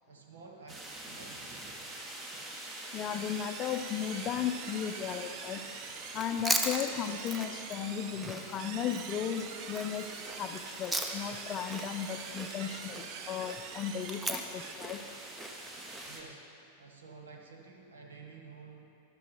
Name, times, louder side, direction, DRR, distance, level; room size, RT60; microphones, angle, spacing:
voice 1, 0.1-1.7 16.0-16.5 16.8-18.9, right 4 dB, 65° right, 1 dB, 1.2 m, -51 dB
sound 1, 0.7-16.2, right 1 dB, 25° right, 1.6 m, -45 dB
voice 2, 2.9-5.6 6.1-10.1 10.4-15.0, left 9 dB, 30° left, 8 dB, 0.6 m, -35 dB
sound 2, 3.1-14.7, right 10 dB, 45° right, 0.4 m, -47 dB
Chewing mastication, 6.1-11.4 11.7-16.1, right 1 dB, 10° right, 0.8 m, -38 dB
12.5 x 11.0 x 3.3 m, 2.7 s
figure-of-eight pair, 90°, 0 cm